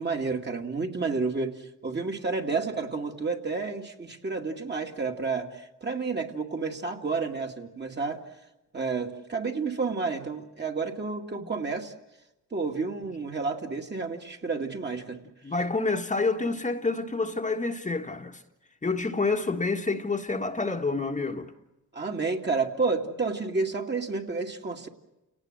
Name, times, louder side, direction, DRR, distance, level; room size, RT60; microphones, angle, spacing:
voice 1, 0.0-8.2 8.7-11.9 12.5-15.2 21.9-24.9, right 4 dB, 30° right, 2.3 m, -30 dB
voice 2, 15.4-18.4 18.8-21.5, left 3 dB, 20° left, 1.6 m, -28 dB
29.0 x 18.5 x 7.9 m
cardioid pair, 80°, 34 cm